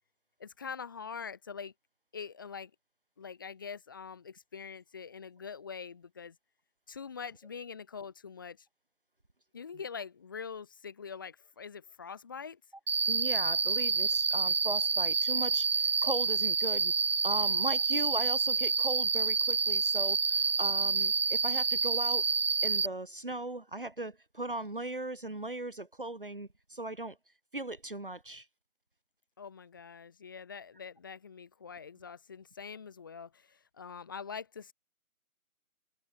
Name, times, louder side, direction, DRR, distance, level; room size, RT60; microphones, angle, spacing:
voice 1, 0.4-1.7 2.1-2.7 3.2-6.3 6.9-8.7 9.5-12.6 29.4-34.7, left 6 dB, 15° left, 6.6 m, -44 dB
Cricket, 12.9-22.9, right 4 dB, 60° right, 0.5 m, -28 dB
voice 2, 13.1-16.9 17.2-22.3 22.6-27.2 27.5-28.5, right 2 dB, 35° right, 3.1 m, -38 dB
figure-of-eight pair, 170°, 44 cm